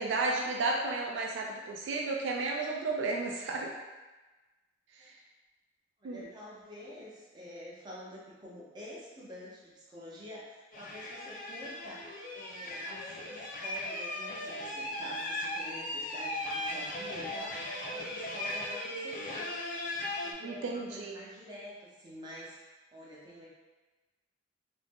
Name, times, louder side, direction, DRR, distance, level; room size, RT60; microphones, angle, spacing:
voice 1, 0.0-3.7 5.0-5.1 6.0-6.3 20.4-21.2, right 3 dB, 75° right, 0 dB, 0.3 m, -33 dB
voice 2, 6.0-19.5 20.2-23.5, equal, 25° right, -7 dB, 0.7 m, -47 dB
sound 1, 10.7-20.3, left 1 dB, 45° left, 0.4 m, -37 dB
2.6 x 2.0 x 3.3 m, 1.2 s
head